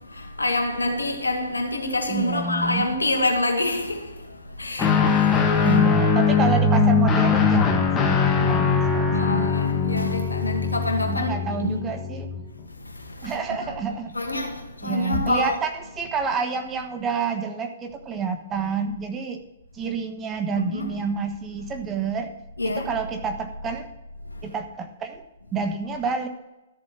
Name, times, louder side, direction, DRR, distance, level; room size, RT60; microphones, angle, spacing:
voice 1, 0.1-4.1 4.6-5.8 9.1-11.8 13.2-13.4 14.1-15.5 20.5-21.0 22.6-22.9, left 2 dB, 80° left, 2.2 m, -26 dB
voice 2, 2.1-2.9 5.6-9.5 11.1-12.3 13.2-14.1 14.8-15.7 16.0-19.4 19.7-22.3 22.6-23.9 24.4-25.2 25.5-26.3, right 5 dB, 20° right, 1.3 m, -29 dB
Guitar, 4.8-12.5, left 5 dB, 15° left, 1.5 m, -21 dB
13.5 x 7.5 x 6.0 m
figure-of-eight pair, 120°, 0 cm